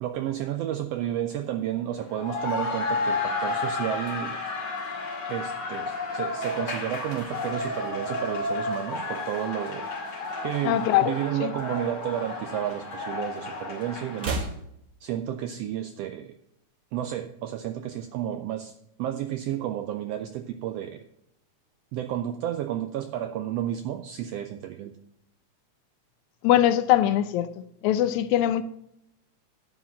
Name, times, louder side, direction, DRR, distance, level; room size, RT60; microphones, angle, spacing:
voice 1, 0.0-4.4 5.3-9.9 10.4-14.5 15.0-16.4 16.9-18.7 19.0-21.0 21.9-24.9, right 11 dB, 90° right, 1.4 m, -31 dB
sound 1, 2.0-14.3, left 3 dB, 55° left, 3.3 m, -32 dB
sound 2, 7.0-9.4 9.6-9.9 10.2-11.7 12.0-13.3 13.6-15.7 15.9-16.0, right 2 dB, 65° right, 0.8 m, -39 dB
voice 2, 10.6-11.1 11.4-11.5 26.4-28.6, left 12 dB, 80° left, 2.0 m, -22 dB
11.0 x 4.8 x 7.0 m
omnidirectional pair, 3.4 m